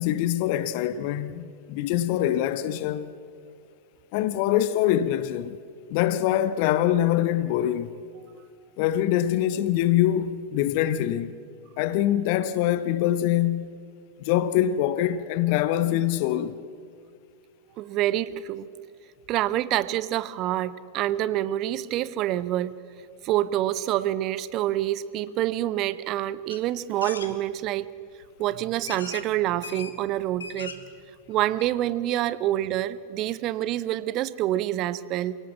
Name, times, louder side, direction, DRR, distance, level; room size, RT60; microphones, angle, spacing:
voice 1, 0.0-3.1 4.1-5.6 5.9-7.9 8.8-11.3 11.8-13.8 14.2-16.6, left 12 dB, 45° left, 0.8 m, -24 dB
voice 2, 17.8-18.7 19.3-22.7 23.2-27.9 28.4-30.8 31.3-35.4, right 13 dB, 40° right, 0.8 m, -27 dB
sound 1, 26.5-26.6 27.0-27.3 28.2-28.3 28.9-29.3 29.6-29.9 30.3-30.9 31.3-31.4 31.6-31.7, left 5 dB, 70° left, 1.9 m, -38 dB
28.0 x 17.5 x 7.4 m
figure-of-eight pair, 90°, 0 cm